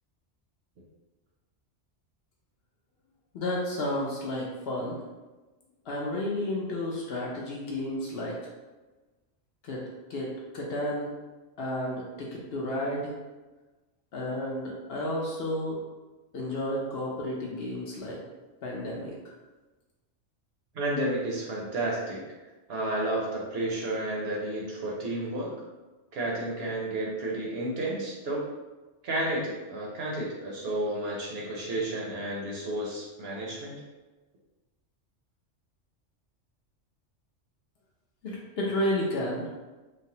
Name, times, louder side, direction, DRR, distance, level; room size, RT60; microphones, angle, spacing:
voice 1, 3.3-5.0 5.9-8.4 9.6-9.8 10.1-11.1 11.6-13.1 14.1-15.8 16.3-18.2 18.6-19.1 38.2-39.5, left 1 dB, 60° left, -3 dB, 0.8 m, -32 dB
voice 2, 20.7-22.2 22.7-25.5 26.1-28.4 29.0-33.8, right 1 dB, 60° right, -4 dB, 0.8 m, -31 dB
3.2 x 2.1 x 2.7 m, 1.2 s
omnidirectional pair, 1.3 m